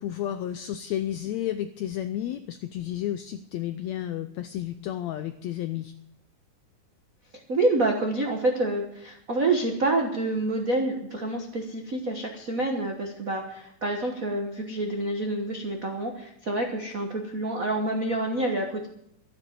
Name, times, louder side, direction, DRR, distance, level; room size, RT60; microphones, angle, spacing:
voice 1, 0.0-5.9, left 12 dB, 85° left, 11 dB, 1.5 m, -32 dB
voice 2, 7.5-18.9, right 2 dB, 85° right, 3 dB, 0.7 m, -27 dB
13.0 x 9.3 x 7.8 m, 0.76 s
omnidirectional pair, 3.8 m